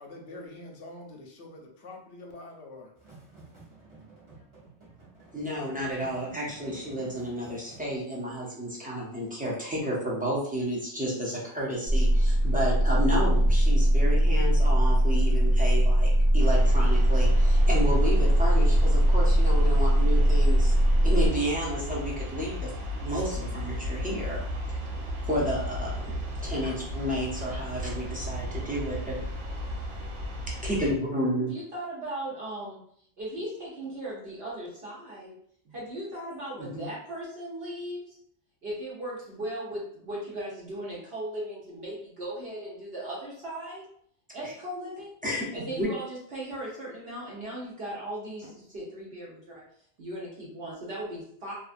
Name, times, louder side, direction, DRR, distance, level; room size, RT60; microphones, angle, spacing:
voice 1, 0.0-2.9, left 2 dB, 75° left, 1 dB, 0.9 m, -45 dB
sound 1, 3.0-8.0, right 3 dB, 30° right, 0.8 m, -51 dB
voice 2, 5.3-20.7 21.0-22.7 23.0-24.8 25.2-26.2 26.4-29.2 30.6-31.5 36.6-36.8 44.4-44.5 45.2-45.9, equal, 10° right, -5 dB, 0.5 m, -31 dB
sound 2, 11.9-21.3, right 1 dB, 45° left, 0.7 m, -21 dB
sound 3, 16.4-30.9, equal, 85° right, 1.0 m, -34 dB
voice 3, 31.5-32.8 33.2-35.3 35.6-38.1 38.6-43.8 44.3-45.1 45.5-49.6 50.0-51.5, right 1 dB, 60° right, -6 dB, 1.0 m, -37 dB
2.5 x 2.3 x 2.5 m, 0.64 s
omnidirectional pair, 1.2 m